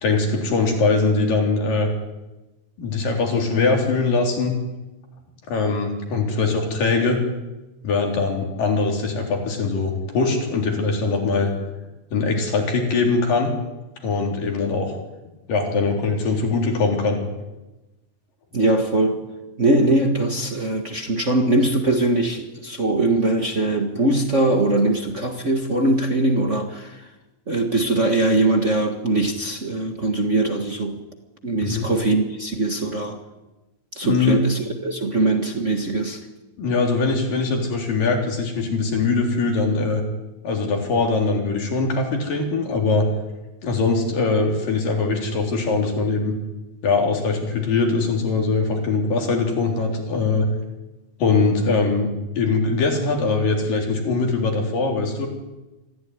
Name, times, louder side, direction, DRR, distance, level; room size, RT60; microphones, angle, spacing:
voice 1, 0.0-1.9 2.8-4.5 5.5-7.2 7.8-11.5 12.1-13.5 14.0-14.9 15.5-17.2 31.6-31.9 34.0-34.4 36.6-40.0 40.4-43.0 43.6-46.3 46.8-50.5 51.2-52.1 52.4-55.3, left 4 dB, 70° left, 1 dB, 5.4 m, -22 dB
voice 2, 18.5-19.2 19.6-27.1 27.5-31.0 31.4-33.2 33.9-36.2, right 2 dB, 40° right, 3 dB, 1.0 m, -21 dB
25.0 x 15.0 x 9.7 m, 1.1 s
omnidirectional pair, 4.1 m